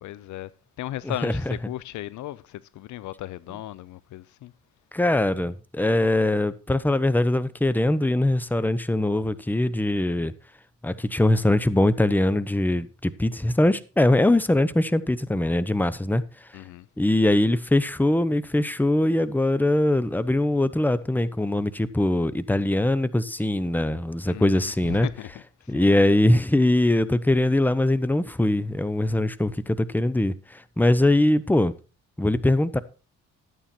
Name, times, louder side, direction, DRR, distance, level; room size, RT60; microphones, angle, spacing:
voice 1, 0.0-0.5 0.8-4.5 16.5-16.9 24.3-25.3 25.7-25.9, left 14 dB, 75° left, 0.7 m, -36 dB
voice 2, 1.0-1.5 4.9-10.3 10.8-16.5 17.0-25.1 25.7-31.7 32.2-32.8, left 1 dB, 5° left, 1.0 m, -22 dB
13.0 x 9.1 x 4.4 m
cardioid pair, 80°, 29 cm